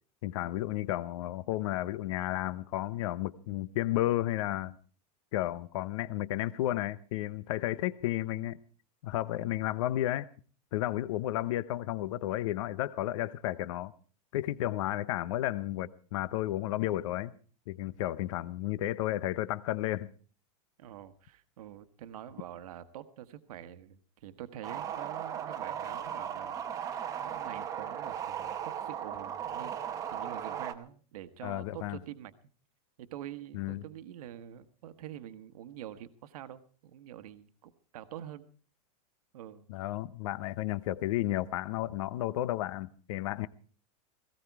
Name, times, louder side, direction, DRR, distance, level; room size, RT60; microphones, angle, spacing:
voice 1, 0.2-4.7 5.3-8.6 9.0-10.3 10.7-13.9 14.3-17.3 17.7-20.1 31.4-32.0 33.5-33.8 39.7-43.5, left 15 dB, 55° left, 0.8 m, -32 dB
voice 2, 20.8-32.3 33.0-38.5 39.3-39.7, right 11 dB, 70° right, 1.4 m, -46 dB
sound 1, 24.6-30.7, right 9 dB, 15° right, 0.9 m, -37 dB
18.0 x 17.0 x 4.7 m
supercardioid pair, 175°, 19 cm